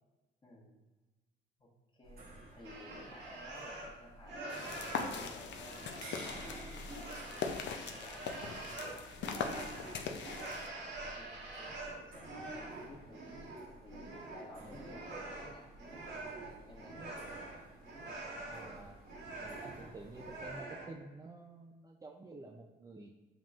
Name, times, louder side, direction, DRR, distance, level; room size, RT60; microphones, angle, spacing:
voice 1, 0.4-0.7 1.6-4.8 5.1-6.9 7.6-13.3 13.8-17.2, left 1 dB, 25° left, -3 dB, 1.4 m, -55 dB
sound 1, 2.0-20.6, right 1 dB, 50° right, 1.0 m, -54 dB
sound 2, 2.6-4.0 4.2-20.9, right 2 dB, 70° right, 1.4 m, -45 dB
sound 3, 4.5-10.7, left 6 dB, 65° left, 0.5 m, -41 dB
voice 2, 18.5-19.0 19.4-23.1, right 2 dB, 15° right, 1 dB, 0.4 m, -50 dB
7.3 x 3.0 x 2.5 m, 1.2 s
cardioid pair, 90°, 20 cm